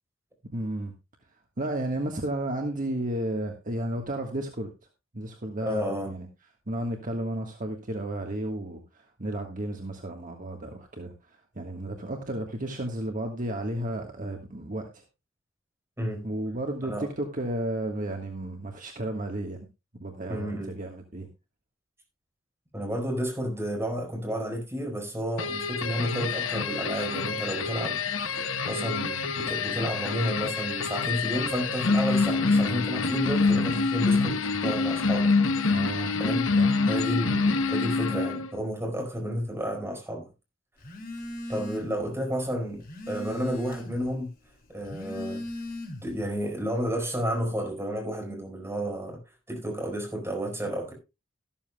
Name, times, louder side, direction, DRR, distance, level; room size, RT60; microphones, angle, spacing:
voice 1, 0.5-0.9 1.6-4.7 5.1-6.3 6.7-11.1 11.5-15.0 16.2-19.6 19.9-21.3 35.7-36.1 36.6-36.7, right 1 dB, 40° right, 1.5 m, -33 dB
voice 2, 5.6-6.1 16.0-16.2 16.8-17.1 20.3-20.7 22.7-35.3 35.6-35.8 36.2-36.5 36.8-40.3 41.5-44.3 44.7-45.4 46.0-49.2 49.5-50.9, equal, 15° right, 4.7 m, -31 dB
sound 1, 25.4-38.5, left 4 dB, 85° left, 1.1 m, -26 dB
Telephone, 40.8-42.1 42.4-44.1 44.7-46.2, left 1 dB, 45° left, 2.6 m, -38 dB
13.5 x 13.0 x 2.3 m
head